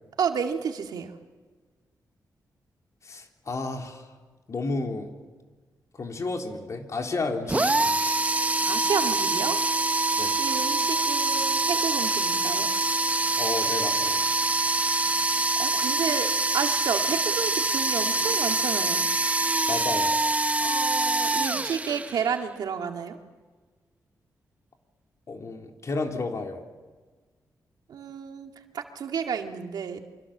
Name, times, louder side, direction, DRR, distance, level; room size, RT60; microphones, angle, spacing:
voice 1, 0.2-1.1 8.6-9.6 10.4-12.7 15.6-19.1 20.6-23.2 27.9-30.0, right 7 dB, 85° right, 4 dB, 2.1 m, -31 dB
voice 2, 3.0-4.1 4.5-5.1 6.0-8.1 10.2-10.3 13.4-14.3 19.7-20.1 25.3-26.6, left 3 dB, 50° left, 3 dB, 3.6 m, -32 dB
sound 1, 7.5-22.4, right 2 dB, 20° right, 0.9 m, -25 dB
29.0 x 25.0 x 7.4 m, 1.4 s
cardioid pair, 90°, 7 cm